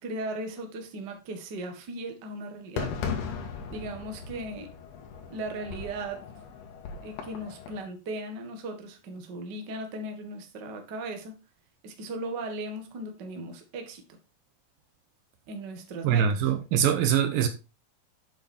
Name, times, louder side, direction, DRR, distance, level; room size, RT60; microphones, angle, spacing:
voice 1, 0.0-2.9 3.7-4.7 5.3-6.2 7.0-11.4 11.8-14.0 15.5-16.5, right 2 dB, 40° right, 1.6 m, -37 dB
Fireworks, 2.8-7.8, left 6 dB, 85° left, 3.7 m, -37 dB
voice 2, 16.0-17.5, right 8 dB, 75° right, 2.5 m, -23 dB
8.0 x 7.7 x 4.4 m
omnidirectional pair, 4.4 m